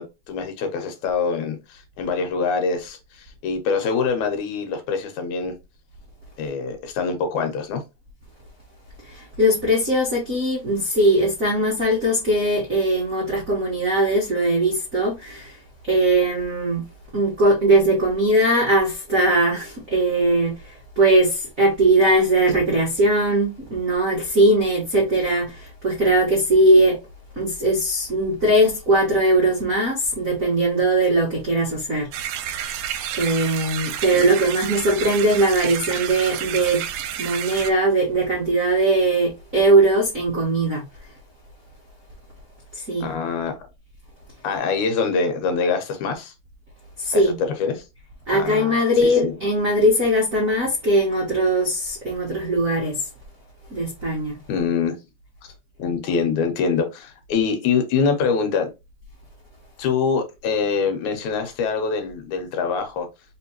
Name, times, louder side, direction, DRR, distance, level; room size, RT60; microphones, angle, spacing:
voice 1, 0.0-5.5 6.4-7.8 34.1-34.3 43.0-43.5 44.4-46.3 47.1-47.2 47.6-47.8 48.3-49.3 54.5-55.0 55.8-58.7 59.8-63.1, left 5 dB, 75° left, 2.2 m, -24 dB
voice 2, 9.1-15.6 15.9-16.8 17.1-27.0 27.4-32.1 33.1-36.8 37.2-40.8 42.7-43.1 47.0-47.4 48.3-53.0 53.7-54.4, right 1 dB, 65° right, 0.8 m, -20 dB
sound 1, 32.1-37.7, right 10 dB, 80° right, 2.0 m, -30 dB
4.5 x 3.3 x 2.9 m
omnidirectional pair, 3.7 m